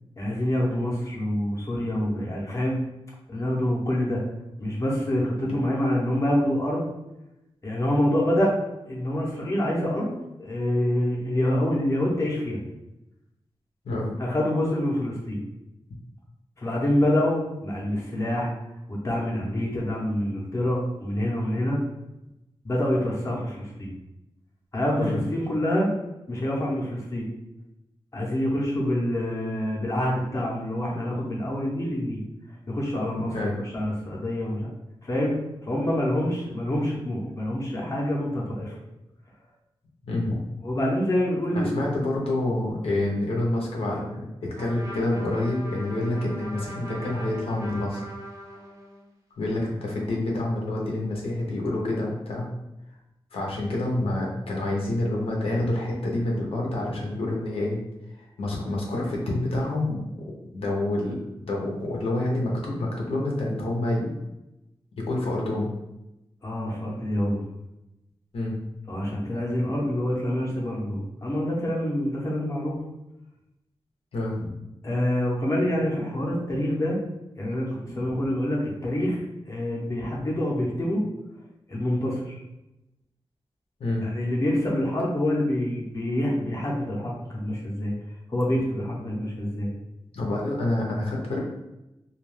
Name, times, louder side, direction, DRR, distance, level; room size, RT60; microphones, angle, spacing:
voice 1, 0.2-2.8 3.3-4.2 4.6-6.9 7.6-8.5 8.9-10.1 10.4-12.6 14.2-15.4 16.6-18.5 18.9-21.8 22.6-23.9 24.7-25.9 26.3-27.3 28.1-32.2 32.7-33.4 33.7-34.7 35.0-35.3 35.7-38.8 40.6-41.7 66.4-67.4 68.9-72.8 74.8-77.0 77.4-79.2 79.4-81.0 81.7-82.4 84.0-87.9 88.3-89.7, left 1 dB, 30° left, -3 dB, 0.7 m, -26 dB
voice 2, 40.0-40.4 41.5-48.2 49.4-52.5 53.3-57.8 58.2-60.0 60.5-64.1 65.0-65.7 68.3-68.6 74.1-74.5 83.8-84.1 90.1-91.4, left 1 dB, 85° left, -2 dB, 0.6 m, -27 dB
Trumpet, 44.5-49.1, equal, 35° right, 0.6 m, -40 dB
2.3 x 2.2 x 3.1 m, 0.92 s
wide cardioid pair, 135°, 10 cm